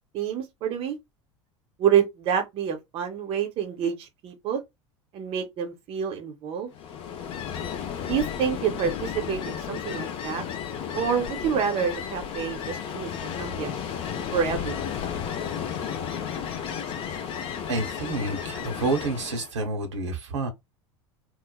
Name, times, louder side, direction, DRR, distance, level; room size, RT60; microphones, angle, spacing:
voice 1, 0.1-1.0 1.8-4.6 5.1-6.7 8.0-10.4 10.9-13.8 14.3-14.9, right 8 dB, 40° right, 0.7 m, -27 dB
Ocean, 6.7-19.5, left 8 dB, 35° left, 0.5 m, -33 dB
voice 2, 17.7-20.5, right 2 dB, 70° right, 0.8 m, -29 dB
3.1 x 2.0 x 2.2 m
figure-of-eight pair, 75°, 16 cm